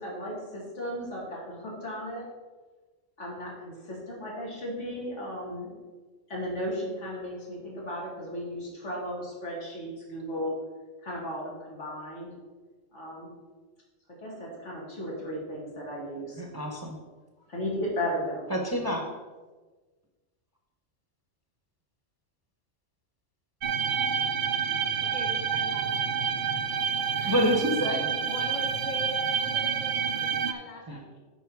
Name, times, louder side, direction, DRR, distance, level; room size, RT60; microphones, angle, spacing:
voice 1, 0.0-2.3 3.2-5.7 6.3-10.5 11.0-12.3 12.9-13.3 14.2-16.5 17.5-18.5, equal, 75° left, -4 dB, 2.6 m, -35 dB
voice 2, 16.4-17.0 18.5-19.1 27.2-28.0 30.9-31.0, equal, 20° right, 1 dB, 0.8 m, -27 dB
sound 1, 23.6-30.5, right 7 dB, 55° right, 0.6 m, -28 dB
voice 3, 25.0-26.2 26.4-27.3 28.2-31.2, left 2 dB, 35° left, 1 dB, 1.3 m, -42 dB
9.9 x 4.5 x 4.7 m, 1.3 s
omnidirectional pair, 1.3 m